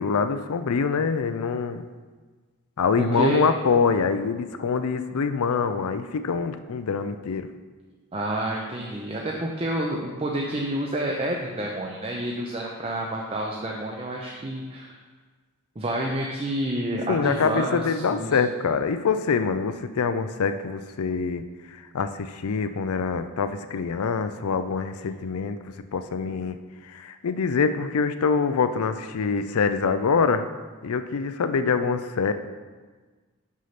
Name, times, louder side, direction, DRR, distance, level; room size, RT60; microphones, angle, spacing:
voice 1, 0.0-1.8 2.8-7.5 17.1-21.4 21.9-25.6 25.9-26.6 26.9-30.5 30.8-32.3, left 5 dB, 75° left, 10 dB, 0.5 m, -25 dB
voice 2, 3.0-3.4 8.1-14.9 15.8-18.4 26.2-26.3, right 1 dB, 25° right, -1 dB, 0.6 m, -29 dB
6.2 x 5.5 x 5.8 m, 1.4 s
head